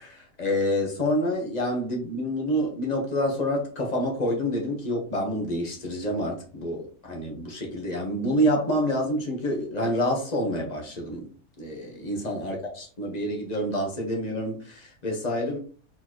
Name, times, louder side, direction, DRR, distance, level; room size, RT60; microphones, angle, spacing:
voice 1, 0.0-11.3 11.6-15.6, equal, 30° left, 0 dB, 1.1 m, -27 dB
4.3 x 4.0 x 3.0 m, 0.40 s
omnidirectional pair, 1.8 m